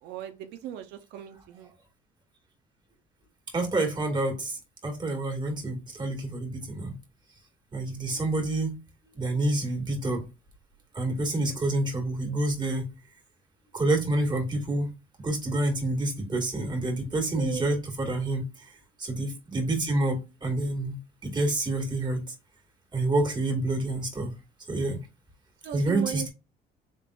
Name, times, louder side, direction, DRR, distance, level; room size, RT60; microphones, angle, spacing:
voice 1, 0.0-1.7 17.3-17.6 25.6-26.3, right 10 dB, 90° right, 0.7 m, -37 dB
voice 2, 3.5-6.9 7.7-8.8 9.1-10.2 10.9-12.8 13.7-14.9 15.2-18.4 19.0-21.0 21.2-22.2 22.9-24.3 24.7-25.0 25.7-26.3, right 2 dB, 25° right, 2.1 m, -28 dB
5.4 x 3.6 x 2.5 m
cardioid pair, 110°, 17 cm